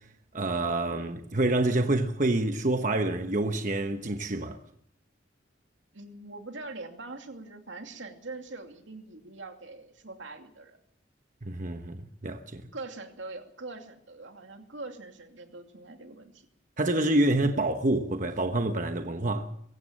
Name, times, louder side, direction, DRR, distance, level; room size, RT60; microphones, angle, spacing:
voice 1, 0.3-4.6 11.4-12.6 16.8-19.5, right 2 dB, 40° right, 1.1 m, -27 dB
voice 2, 5.9-10.8 12.7-16.5, right 3 dB, 75° right, 2.7 m, -43 dB
23.5 x 16.0 x 7.5 m
head